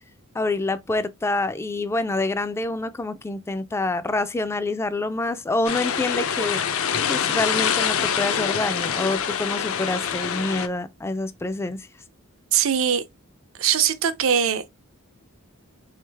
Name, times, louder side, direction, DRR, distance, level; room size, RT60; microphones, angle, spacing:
voice 1, 0.3-6.6 7.1-11.9, left 2 dB, 10° left, 0.3 m, -27 dB
sound 1, 5.6-10.7, left 7 dB, 65° left, 0.6 m, -25 dB
voice 2, 12.5-13.0 13.6-14.7, right 8 dB, 65° right, 0.6 m, -21 dB
3.8 x 3.2 x 3.3 m
head